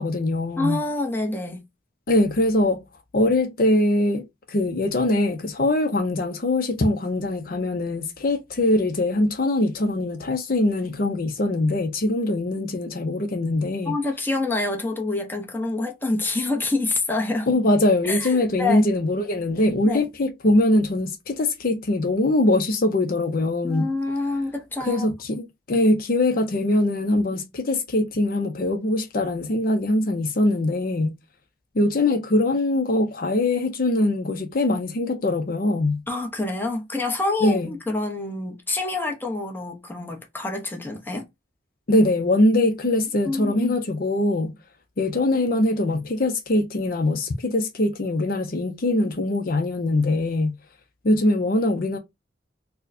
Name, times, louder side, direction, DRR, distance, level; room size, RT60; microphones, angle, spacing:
voice 1, 0.0-0.8 2.1-2.8 3.1-14.0 17.5-23.9 24.8-31.2 31.7-36.0 37.4-37.7 41.9-44.6 45.0-50.6 51.0-52.0, left 1 dB, 50° left, 0.5 m, -22 dB
voice 2, 0.6-1.7 13.9-17.5 18.0-18.9 19.8-20.0 23.6-25.1 36.1-41.3 43.2-43.8, left 2 dB, 10° left, 0.7 m, -27 dB
4.4 x 2.1 x 2.5 m
head